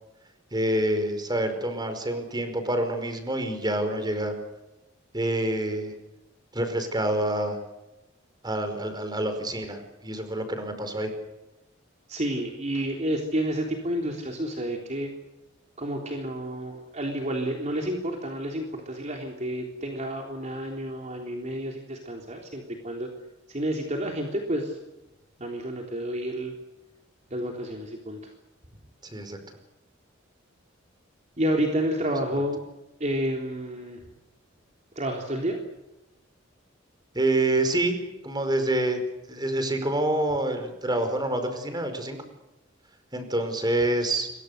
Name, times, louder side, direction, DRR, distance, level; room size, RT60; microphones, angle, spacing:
voice 1, 0.5-4.3 5.1-5.9 6.5-7.6 8.4-11.1 29.0-29.4 37.1-38.0 38.2-39.0 39.3-42.2 43.1-44.3, right 1 dB, 20° right, 7 dB, 5.0 m, -27 dB
voice 2, 12.1-15.1 15.8-23.1 23.5-24.8 25.4-26.5 27.3-28.2 31.4-32.6 33.0-34.0 35.0-35.6, right 1 dB, 35° right, 1 dB, 3.6 m, -30 dB
28.0 x 23.5 x 6.7 m, 0.98 s
head